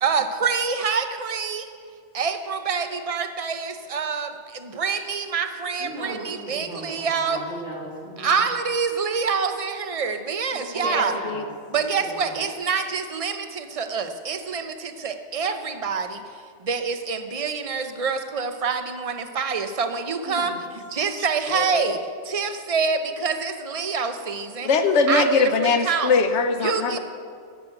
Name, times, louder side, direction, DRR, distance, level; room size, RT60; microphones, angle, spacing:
voice 1, 0.0-1.7 2.1-7.4 8.2-11.1 11.7-16.2 16.6-20.6 20.9-24.7 25.1-26.1 26.6-27.0, right 5 dB, 35° right, 7 dB, 0.9 m, -26 dB
voice 2, 5.8-8.4 10.5-12.4 20.3-20.6, right 1 dB, 80° right, -5 dB, 3.1 m, -37 dB
voice 3, 21.5-22.0 24.6-27.0, left 4 dB, 75° left, 8 dB, 1.2 m, -21 dB
14.0 x 7.5 x 8.8 m, 2.2 s
omnidirectional pair, 1.2 m